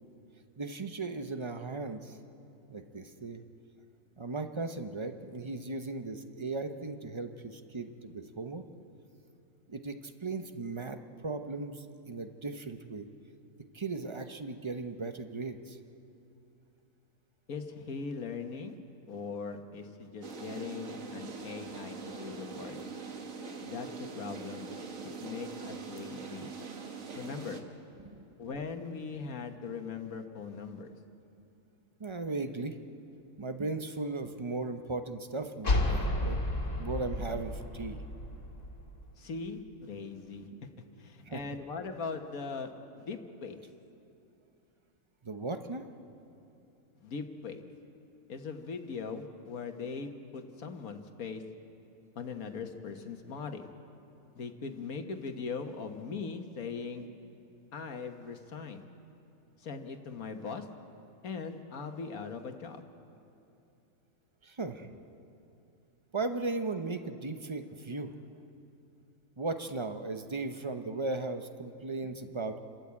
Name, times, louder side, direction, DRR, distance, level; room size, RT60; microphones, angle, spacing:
voice 1, 0.6-2.2 2.7-3.4 4.2-8.6 9.7-11.0 11.2-13.1 13.7-15.8 28.0-28.2 32.0-32.8 33.4-36.4 36.8-38.0 41.2-41.5 45.2-45.9 64.4-65.0 66.1-68.1 69.4-72.6, right 3 dB, 25° right, 7 dB, 0.7 m, -37 dB
voice 2, 17.5-18.8 19.1-22.8 23.6-23.9 24.2-24.7 25.2-26.6 27.1-27.6 28.4-30.9 39.2-40.5 41.0-43.6 47.0-47.6 48.3-51.4 52.1-53.7 54.3-57.1 57.7-58.8 59.6-60.7 61.2-62.8, left 5 dB, 75° left, 5 dB, 1.7 m, -40 dB
sound 1, 20.2-27.6, right 5 dB, 65° right, 1.7 m, -43 dB
sound 2, 35.6-39.1, left 1 dB, 60° left, 2.6 m, -32 dB
28.5 x 13.5 x 8.3 m, 2.7 s
omnidirectional pair, 1.5 m